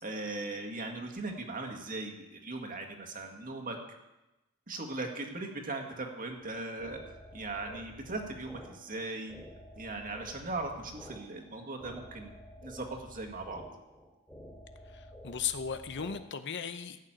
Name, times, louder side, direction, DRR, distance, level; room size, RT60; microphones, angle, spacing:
voice 1, 0.0-3.8 4.7-9.3 9.8-12.3 12.6-13.6, right 2 dB, 40° right, 3 dB, 2.0 m, -39 dB
sound 1, 6.4-16.2, equal, 10° left, 2.9 m, -51 dB
voice 2, 14.9-17.0, left 7 dB, 55° left, 10 dB, 0.7 m, -36 dB
15.5 x 6.6 x 9.1 m, 1.0 s
head